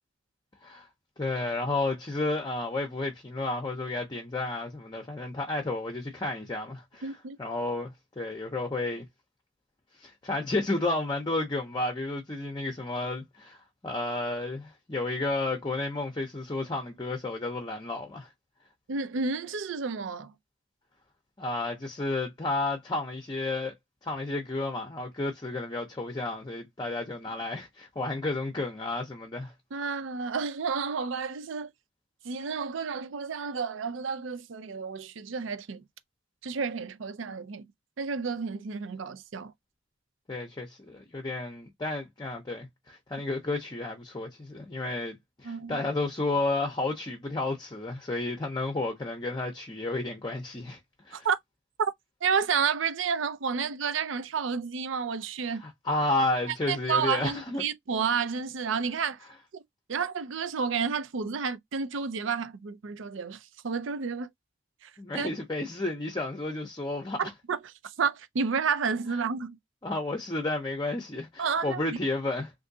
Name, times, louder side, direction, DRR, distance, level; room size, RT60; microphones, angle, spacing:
voice 1, 1.2-7.1 7.4-9.0 10.0-18.3 21.4-23.7 24.0-29.5 40.3-50.8 51.1-51.3 55.6-57.6 65.0-67.3 69.8-72.5, left 2 dB, 20° left, 0.6 m, -32 dB
voice 2, 7.0-7.4 18.9-20.3 29.7-31.7 32.2-35.8 36.4-37.7 38.0-39.5 45.4-45.9 51.1-51.4 52.2-55.6 56.7-59.2 59.5-59.6 59.9-64.3 64.8-65.3 67.5-69.6 71.4-72.0, right 5 dB, 75° right, 0.5 m, -31 dB
3.5 x 2.6 x 2.6 m
head